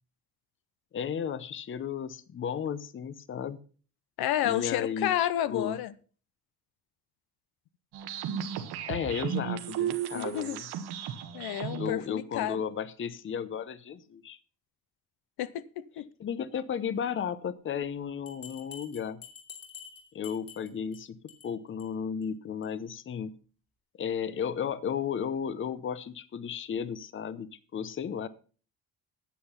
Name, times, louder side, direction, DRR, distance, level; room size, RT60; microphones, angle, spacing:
voice 1, 0.9-3.6 4.4-5.8 8.9-10.7 11.8-14.4 16.2-19.2 20.1-21.2 21.4-23.3 23.9-28.3, left 7 dB, 30° left, 0.7 m, -34 dB
voice 2, 4.2-5.9 10.1-10.6 11.3-12.6 15.4-16.1, left 12 dB, 75° left, 0.8 m, -30 dB
sound 1, 7.9-11.9, right 9 dB, 85° right, 1.4 m, -34 dB
Bell, 18.3-21.0 21.3-21.5 21.8-21.9 22.2-22.3 22.6-22.7, left 7 dB, 60° left, 3.1 m, -47 dB
10.0 x 8.0 x 5.6 m
cardioid pair, 140°, 38 cm